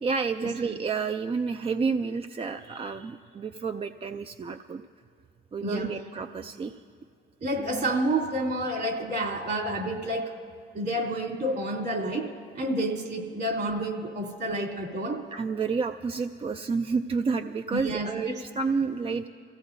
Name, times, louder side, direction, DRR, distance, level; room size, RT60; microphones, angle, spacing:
voice 1, 0.0-4.8 5.5-6.8 7.6-7.9 15.3-19.3, right 5 dB, 30° right, 7 dB, 0.4 m, -30 dB
voice 2, 5.6-6.0 7.4-10.3 10.7-12.3 12.5-15.2 17.7-18.4, right 1 dB, 55° right, 0 dB, 3.0 m, -29 dB
26.5 x 16.0 x 2.7 m, 2.3 s
cardioid pair, 90°, 20 cm